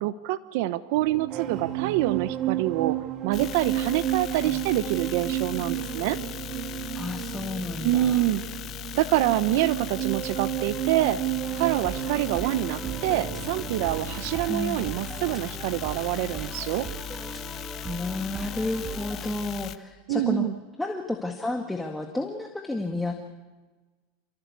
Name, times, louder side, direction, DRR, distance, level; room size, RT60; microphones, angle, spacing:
voice 1, 0.0-3.0 3.2-6.2 7.8-8.4 8.9-11.2 11.5-16.9 20.1-20.5, right 15 dB, 65° right, 14 dB, 1.0 m, -26 dB
sound 1, 0.9-17.6 17.9-18.2, right 13 dB, 40° right, 1.6 m, -33 dB
sound 2, 3.3-19.8, left 12 dB, 40° left, 1.1 m, -38 dB
voice 2, 6.9-8.3 14.5-14.9 17.9-20.5 20.8-23.1, left 2 dB, 5° left, 3 dB, 1.8 m, -31 dB
sound 3, 11.4-19.3, right 2 dB, 10° right, 1.6 m, -39 dB
28.5 x 16.5 x 8.4 m, 1.3 s
supercardioid pair, 130°, 0 cm